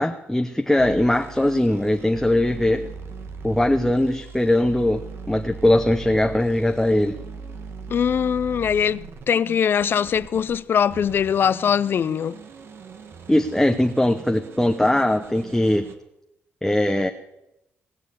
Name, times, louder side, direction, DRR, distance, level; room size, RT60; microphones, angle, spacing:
voice 1, 0.0-2.8 3.4-7.2 13.3-15.9 16.6-17.1, left 1 dB, 5° left, 0.9 m, -20 dB
sound 1, 0.8-10.6 10.9-15.9, right 5 dB, 65° right, 1.5 m, -40 dB
voice 2, 7.9-12.4, left 8 dB, 55° left, 0.5 m, -22 dB
19.5 x 7.1 x 8.4 m
cardioid pair, 90°, 4 cm